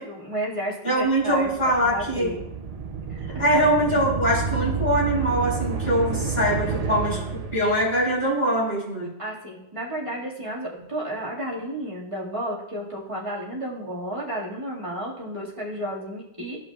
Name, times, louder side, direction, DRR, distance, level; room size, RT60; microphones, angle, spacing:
voice 1, 0.1-1.5 1.8-2.4 3.1-3.5 6.8-7.4 9.2-16.6, equal, 25° right, -5 dB, 2.0 m, -32 dB
voice 2, 0.8-2.3 3.4-7.2 7.5-9.1, right 1 dB, 45° left, -7 dB, 3.6 m, -22 dB
sound 1, 1.2-8.1, right 5 dB, 45° right, 0.6 m, -30 dB
14.0 x 5.6 x 2.3 m, 0.82 s
omnidirectional pair, 1.2 m